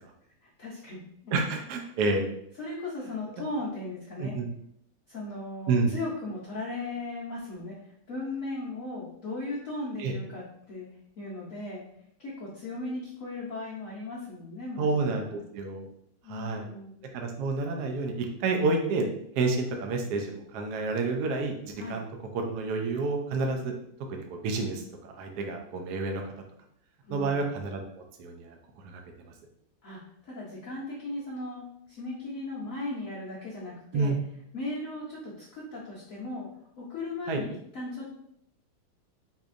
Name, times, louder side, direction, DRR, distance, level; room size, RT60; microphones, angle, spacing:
voice 1, 0.4-1.6 2.6-4.3 5.1-10.9 11.2-11.8 12.2-15.4 16.2-16.9 21.8-22.0 27.1-27.5 29.8-34.1 34.5-36.5 36.8-38.1, left 2 dB, 80° left, -7 dB, 0.7 m, -37 dB
voice 2, 1.3-2.2 4.2-4.5 5.7-5.9 10.0-10.1 14.8-15.9 16.3-16.6 17.1-19.1 19.4-21.6 21.9-22.0 22.3-23.7 24.1-26.2 27.1-27.8 28.2-28.5 28.8-29.0 33.9-34.2 37.3-37.4, right 3 dB, 80° right, 3 dB, 0.9 m, -29 dB
4.1 x 2.8 x 2.5 m, 0.71 s
omnidirectional pair, 2.4 m